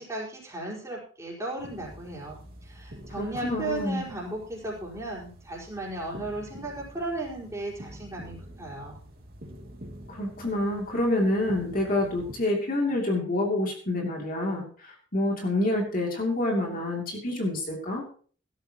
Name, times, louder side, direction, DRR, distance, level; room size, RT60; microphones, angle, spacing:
voice 1, 0.0-9.0, right 2 dB, 15° right, -4 dB, 5.0 m, -36 dB
sound 1, 1.6-12.4, equal, 45° right, 2.9 m, -46 dB
voice 2, 3.2-4.0 10.1-18.0, left 1 dB, 45° left, 0 dB, 2.9 m, -27 dB
17.5 x 13.0 x 3.0 m, 0.43 s
head